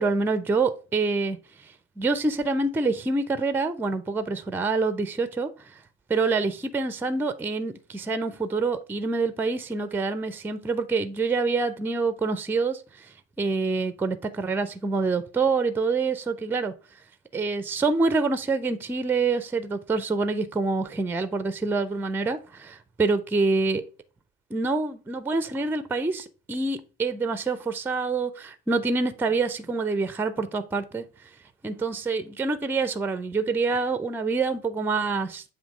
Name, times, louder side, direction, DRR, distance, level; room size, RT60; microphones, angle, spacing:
voice 1, 0.0-1.4 2.0-5.5 6.1-13.1 13.4-16.7 17.3-23.8 24.5-31.0 31.6-35.4, right 3 dB, 5° right, 0.4 m, -26 dB
7.6 x 2.8 x 4.9 m
hypercardioid pair, 70°, 45 cm